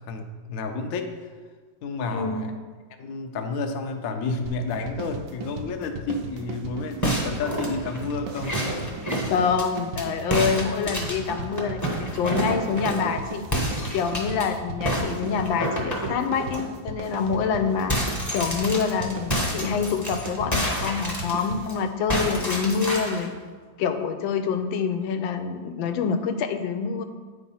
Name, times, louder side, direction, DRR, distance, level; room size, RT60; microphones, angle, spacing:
voice 1, 0.1-1.1 1.8-2.5 3.0-8.9, left 3 dB, 65° left, 5 dB, 0.9 m, -30 dB
sound 1, 4.5-21.9, right 2 dB, 80° right, 1.4 m, -37 dB
sound 2, 7.0-10.0 10.3-13.1 13.5-14.5 14.9-16.6 17.0-17.2 17.5-21.7 22.1-23.3, equal, 15° left, 0.7 m, -29 dB
voice 2, 9.2-13.4 13.9-18.0 18.3-23.3 23.8-27.0, left 6 dB, 90° left, 8 dB, 1.4 m, -26 dB
8.4 x 3.7 x 5.5 m, 1.5 s
omnidirectional pair, 2.0 m